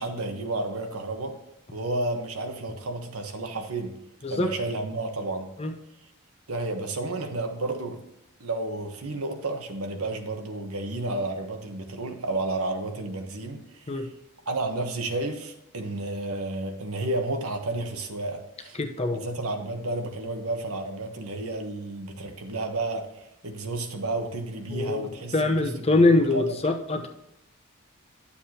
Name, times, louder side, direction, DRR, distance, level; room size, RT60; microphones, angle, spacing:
voice 1, 0.0-1.4 1.7-3.9 4.3-5.5 6.5-8.0 8.4-14.1 14.5-18.8 19.1-23.1 23.4-26.4, right 2 dB, 75° right, 5 dB, 1.2 m, -31 dB
voice 2, 18.8-19.3 24.7-27.1, left 2 dB, 30° left, 4 dB, 0.9 m, -23 dB
11.0 x 7.2 x 2.9 m, 0.88 s
head